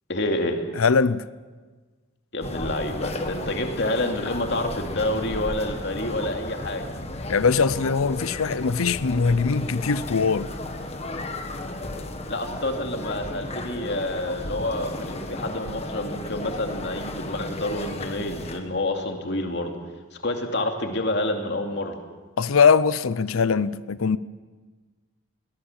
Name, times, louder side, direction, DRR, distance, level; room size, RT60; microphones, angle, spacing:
voice 1, 0.1-0.6 2.3-6.9 12.3-19.8 20.2-22.0, left 1 dB, 55° left, 2.5 m, -28 dB
voice 2, 0.8-1.2 7.3-10.5 22.4-24.2, left 5 dB, 80° left, 0.6 m, -21 dB
sound 1, 2.4-18.6, left 1 dB, 30° left, 1.6 m, -34 dB
22.0 x 19.0 x 7.3 m
head